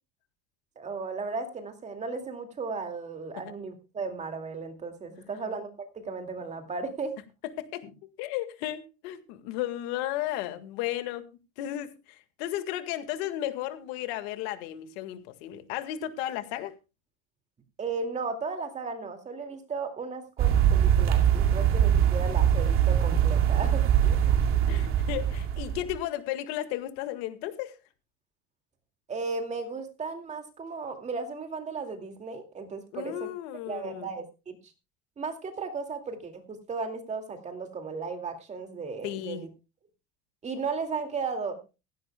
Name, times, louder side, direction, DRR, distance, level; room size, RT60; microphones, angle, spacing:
voice 1, 0.8-5.7 5.9-7.2 17.8-24.2 29.1-33.3 33.7-34.6 35.2-39.5 40.4-41.8, right 4 dB, 20° right, 2.3 m, -35 dB
voice 2, 5.1-5.4 7.6-11.3 11.6-16.7 24.7-27.8 32.9-34.1 39.0-39.4, left 13 dB, 85° left, 1.8 m, -34 dB
sound 1, 20.4-26.0, right 9 dB, 45° right, 2.3 m, -23 dB
16.0 x 16.0 x 2.2 m
cardioid pair, 160°, 31 cm